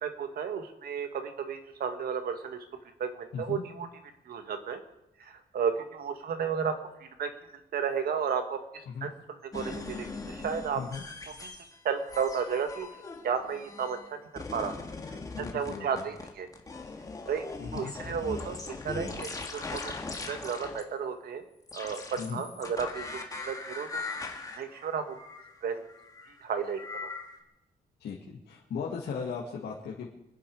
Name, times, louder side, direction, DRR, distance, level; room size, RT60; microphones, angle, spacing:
voice 1, 0.0-2.6 3.0-3.9 4.3-4.8 5.2-6.7 7.0-7.3 7.7-8.6 9.0-10.8 11.3-11.5 11.8-12.9 13.2-14.2 14.5-14.7 15.1-16.5 17.3-17.5 17.7-21.4 21.7-25.2 25.6-25.8 26.4-27.1, right 7 dB, 60° right, 7 dB, 1.8 m, -33 dB
sound 1, 9.5-11.8 12.1-14.1 14.4-20.8 21.7-27.4, left 3 dB, 20° left, 2.0 m, -40 dB
voice 2, 15.3-16.0 17.6-17.9 22.2-22.4 28.0-30.1, left 6 dB, 75° left, -3 dB, 2.2 m, -37 dB
25.0 x 10.5 x 4.8 m, 0.87 s
wide cardioid pair, 160°, 17 cm